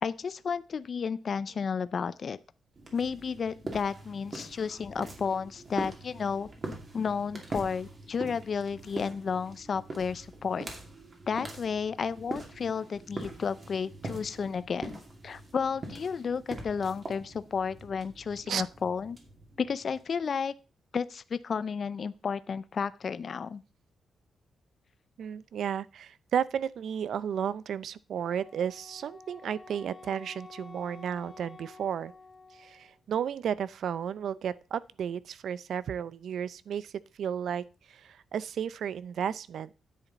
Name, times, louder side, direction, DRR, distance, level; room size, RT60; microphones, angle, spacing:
voice 1, 0.0-2.4 2.9-6.5 6.9-10.7 11.3-19.2 19.6-20.5 20.9-23.6, left 6 dB, 45° left, 0.4 m, -32 dB
sound 1, 2.8-20.3, right 2 dB, 30° right, 2.5 m, -43 dB
voice 2, 25.2-32.1 32.5-36.9 37.2-39.7, right 8 dB, 70° right, 0.4 m, -33 dB
Wind instrument woodwind instrument, 28.2-33.0, left 3 dB, 15° left, 1.4 m, -50 dB
10.0 x 8.4 x 4.0 m
wide cardioid pair, 140°, 0 cm